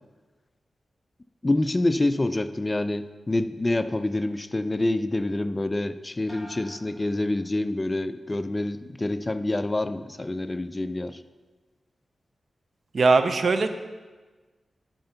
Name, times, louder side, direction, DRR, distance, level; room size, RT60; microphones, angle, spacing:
voice 1, 1.4-11.2, left 2 dB, 25° left, 11 dB, 0.4 m, -27 dB
sound 1, 6.3-8.0 8.4-9.0, equal, ahead, 2.2 m, -50 dB
voice 2, 12.9-13.7, right 3 dB, 60° right, 9 dB, 0.6 m, -20 dB
11.5 x 4.4 x 5.6 m, 1.3 s
cardioid pair, 70°, 0 cm